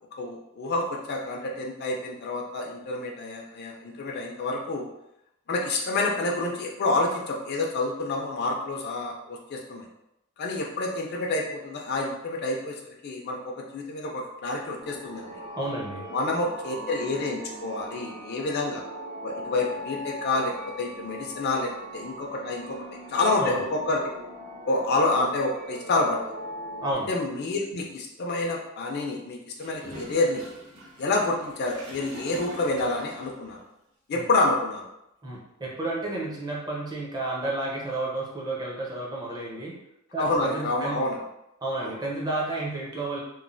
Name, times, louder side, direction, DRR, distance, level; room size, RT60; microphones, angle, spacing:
voice 1, 0.2-4.9 5.5-9.9 10.4-15.4 16.1-18.8 19.2-24.0 24.7-26.2 27.1-30.4 31.0-33.6 34.1-34.9 40.2-41.2 41.8-41.9, left 2 dB, 50° left, -1 dB, 0.4 m, -28 dB
sound 1, 14.8-26.9, right 1 dB, 70° right, 0.9 m, -40 dB
voice 2, 15.6-16.0 23.4-23.6 26.8-27.1 34.1-34.3 35.2-39.7 40.1-41.0 41.6-43.2, right 2 dB, 20° right, -4 dB, 0.6 m, -31 dB
Gurgling / Toilet flush, 29.6-33.3, equal, 90° right, 1.3 m, -42 dB
3.0 x 2.1 x 2.5 m, 0.84 s
head